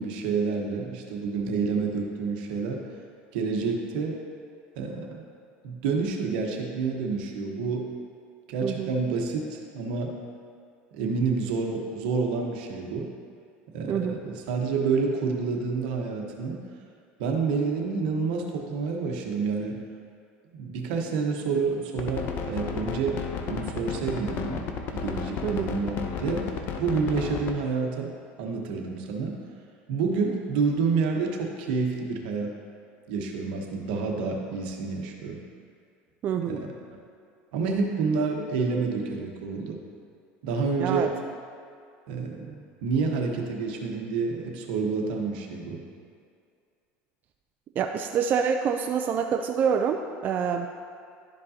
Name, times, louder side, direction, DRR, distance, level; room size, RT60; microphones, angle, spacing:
voice 1, 0.0-2.8 3.3-4.2 4.8-5.2 5.6-7.9 8.5-10.1 10.9-13.1 13.7-16.6 17.2-19.8 20.5-23.2 23.5-24.6 24.9-28.1 28.4-29.4 29.9-32.5 33.1-35.4 36.5-36.7 37.5-39.8 40.4-41.1 42.1-45.8, right 4 dB, 80° right, 1 dB, 1.1 m, -28 dB
voice 2, 8.6-8.9 13.9-14.2 25.4-25.7 36.2-36.6 40.8-41.1 47.8-50.7, right 7 dB, 40° right, 4 dB, 0.4 m, -26 dB
sound 1, 22.0-27.5, left 7 dB, 45° left, 0.7 m, -32 dB
11.5 x 5.3 x 2.8 m, 2.3 s
supercardioid pair, 125°, 5 cm